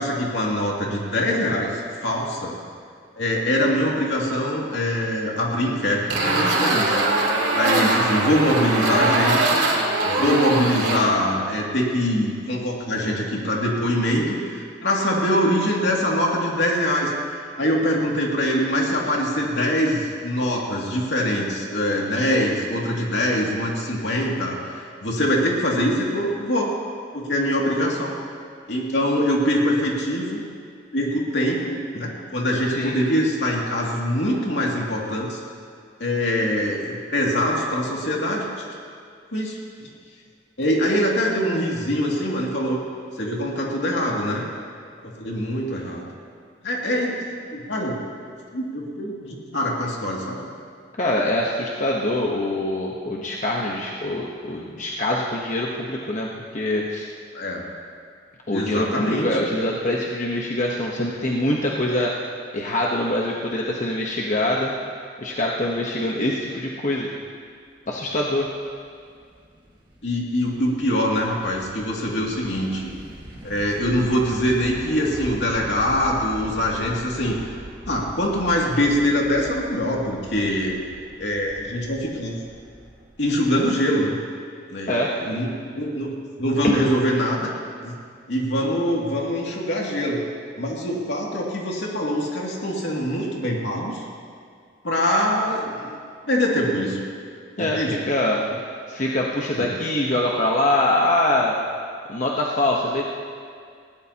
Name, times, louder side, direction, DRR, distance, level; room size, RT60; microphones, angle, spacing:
voice 1, 0.0-2.5 3.2-7.0 7.5-9.6 10.0-17.1 17.5-26.7 27.1-28.2 28.7-30.4 30.9-35.4 36.0-38.5 39.3-39.6 40.6-42.8 43.2-44.4 45.2-46.1 46.6-48.0 48.5-50.5 57.3-57.6 58.5-59.5 70.0-72.9 73.4-77.4 77.9-80.8 81.2-82.4 83.2-84.2 84.7-87.5 87.8-87.9 88.3-90.2 90.6-94.0 94.8-96.0 96.3-97.0 97.6-98.0 99.5-99.7, equal, 70° left, -2 dB, 2.5 m, -23 dB
sound 1, 6.1-11.0, right 2 dB, 80° right, 3.1 m, -21 dB
voice 2, 51.0-56.3 56.5-57.1 58.5-62.1 62.5-64.7 65.2-67.1 67.9-68.5 84.9-85.1 86.6-86.8 97.6-98.4 98.9-101.6 102.1-103.0, left 1 dB, 40° left, -2 dB, 1.0 m, -24 dB
sound 2, 68.1-83.6, equal, 25° right, 1.8 m, -42 dB
20.0 x 16.5 x 2.9 m, 2.2 s
head